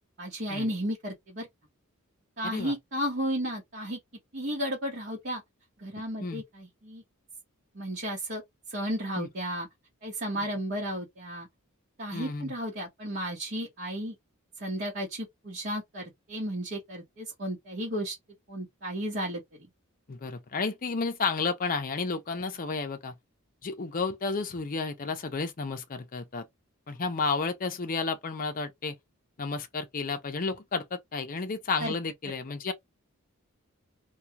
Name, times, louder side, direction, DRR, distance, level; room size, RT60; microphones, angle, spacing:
voice 1, 0.2-1.5 2.4-4.0 4.3-5.4 5.8-7.0 7.7-8.4 8.7-9.7 10.0-11.5 12.0-14.1 14.6-18.1 18.5-19.7 31.8-31.9, equal, 50° right, 1.0 m, -33 dB
voice 2, 12.1-12.5 20.1-23.1 23.6-26.5 26.9-29.0 29.4-32.7, left 4 dB, 40° left, 0.5 m, -32 dB
2.3 x 2.3 x 2.8 m
head